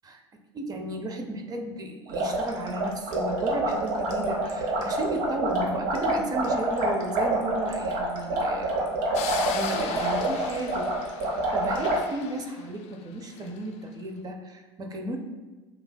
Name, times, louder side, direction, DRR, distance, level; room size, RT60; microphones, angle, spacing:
voice 1, 0.5-8.9 9.2-10.9 11.2-15.2, right 1 dB, 25° right, 4 dB, 0.5 m, -34 dB
sound 1, 2.1-12.0, right 1 dB, 60° right, 0.9 m, -27 dB
sound 2, 9.1-13.6, left 7 dB, 45° left, 0.4 m, -38 dB
5.3 x 2.4 x 2.2 m, 1.2 s
hypercardioid pair, 80°, 15 cm